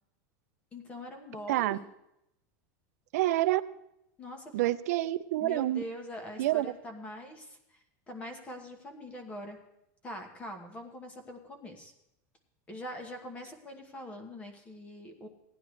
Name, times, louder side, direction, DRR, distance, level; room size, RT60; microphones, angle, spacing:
voice 1, 0.7-1.9 4.2-4.5 5.4-7.8 8.1-9.6 10.0-11.9 12.7-15.3, left 1 dB, 15° left, 5 dB, 1.2 m, -43 dB
voice 2, 1.5-1.8 3.1-3.6 4.5-5.8 6.4-6.7, right 16 dB, 70° right, 12 dB, 0.4 m, -27 dB
17.0 x 10.0 x 3.2 m, 0.83 s
supercardioid pair, 175°, 9 cm